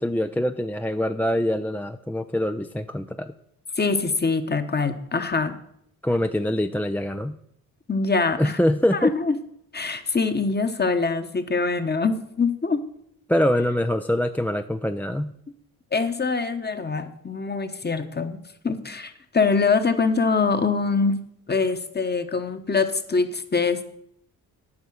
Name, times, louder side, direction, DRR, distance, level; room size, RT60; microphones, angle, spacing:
voice 1, 0.0-3.3 6.0-7.4 8.4-9.1 13.3-15.3, left 1 dB, 5° left, 8 dB, 0.4 m, -24 dB
voice 2, 3.8-5.6 7.9-8.6 8.9-9.4 9.7-12.8 15.9-21.2 21.5-23.8, left 4 dB, 25° left, 9 dB, 1.2 m, -24 dB
9.8 x 5.5 x 7.8 m, 0.72 s
cardioid pair, 65°, 38 cm